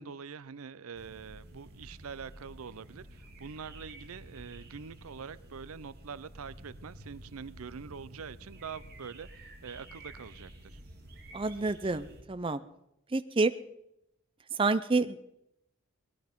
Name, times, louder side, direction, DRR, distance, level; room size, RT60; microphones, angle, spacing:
voice 1, 0.0-10.8, right 6 dB, 85° right, 17 dB, 0.6 m, -45 dB
sound 1, 0.9-12.2, right 1 dB, 45° right, 2.0 m, -50 dB
voice 2, 11.3-12.6 13.1-13.5 14.5-15.2, right 3 dB, 25° right, 12 dB, 0.5 m, -28 dB
19.5 x 12.0 x 5.2 m, 0.82 s
head